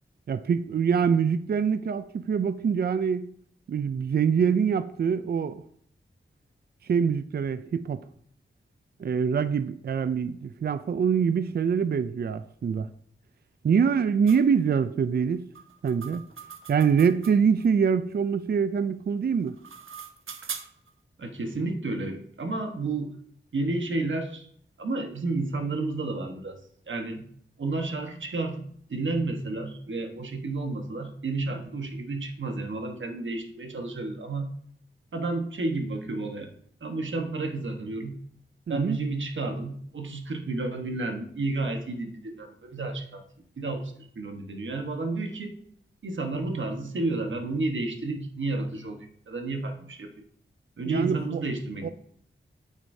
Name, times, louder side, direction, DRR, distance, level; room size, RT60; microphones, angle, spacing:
voice 1, 0.3-3.3 3.7-5.6 6.9-8.0 9.0-12.9 13.6-15.5 15.8-16.2 16.7-19.5 38.7-39.0 50.9-51.4 51.8-51.9, right 6 dB, 50° right, 0.4 m, -24 dB
sound 1, 14.3-14.4 15.5-17.7 19.3-20.9, right 6 dB, 85° right, 0.7 m, -41 dB
voice 2, 21.2-23.1 23.5-24.5 24.8-26.6 26.9-27.3 27.6-34.5 35.1-36.5 36.8-38.2 38.7-43.2 43.6-45.6 46.0-50.2 50.8-51.9, right 2 dB, 70° right, 1.3 m, -31 dB
9.0 x 8.2 x 2.7 m
wide cardioid pair, 115°, 20 cm